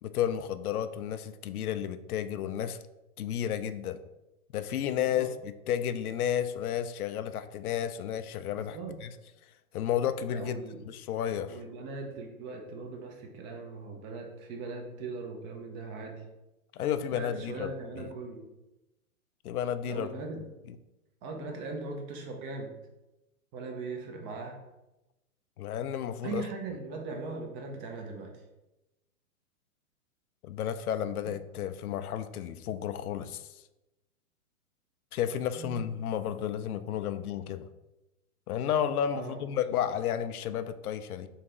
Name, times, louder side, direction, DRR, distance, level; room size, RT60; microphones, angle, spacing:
voice 1, 0.0-2.8 3.2-4.0 4.5-9.1 9.7-11.6 16.7-18.1 19.4-20.1 25.6-26.4 30.4-33.5 35.1-37.7 38.5-41.3, left 9 dB, 80° left, 11 dB, 0.5 m, -32 dB
voice 2, 8.6-8.9 10.3-10.9 11.5-16.2 17.1-18.4 19.9-20.4 21.2-22.8 23.5-24.6 26.2-28.3 31.3-31.4 35.6-35.9 39.1-39.4 39.7-39.8, right 3 dB, 25° right, 2 dB, 0.5 m, -40 dB
4.0 x 3.3 x 3.7 m, 0.98 s
hypercardioid pair, 130°, 44 cm